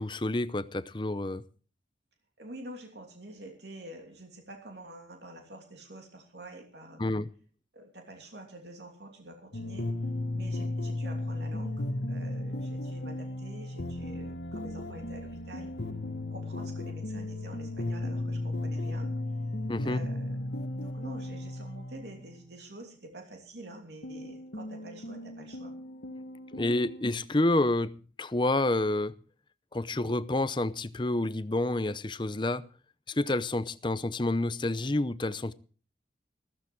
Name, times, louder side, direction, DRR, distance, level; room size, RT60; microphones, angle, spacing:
voice 1, 0.0-1.4 7.0-7.3 19.7-20.0 26.5-29.1 29.7-32.6 33.1-35.5, left 2 dB, 25° left, 0.6 m, -29 dB
voice 2, 2.4-7.1 7.7-10.0 10.3-15.7 16.3-19.1 19.8-25.7, right 1 dB, 70° right, 3.0 m, -47 dB
sound 1, 9.5-22.3 24.0-27.1, left 1 dB, 75° left, 1.4 m, -35 dB
14.5 x 14.5 x 4.6 m
head